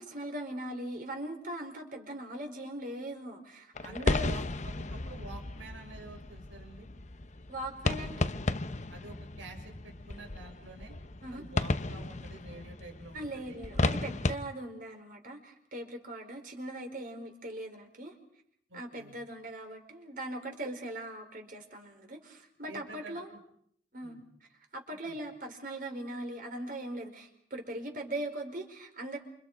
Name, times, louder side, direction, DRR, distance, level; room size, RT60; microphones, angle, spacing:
voice 1, 0.0-4.3 7.5-8.3 11.2-11.4 13.1-18.1 18.7-23.3 23.9-24.2 24.7-29.2, right 1 dB, 50° right, 3 dB, 4.9 m, -40 dB
sound 1, 3.8-14.4, left 2 dB, 40° left, 0.9 m, -34 dB
voice 2, 3.8-6.9 8.9-11.0 11.3-13.6 18.7-19.1 22.7-23.4 24.0-24.2 25.0-25.2, right 2 dB, 85° right, 3 dB, 6.2 m, -49 dB
28.5 x 27.5 x 5.0 m, 0.66 s
head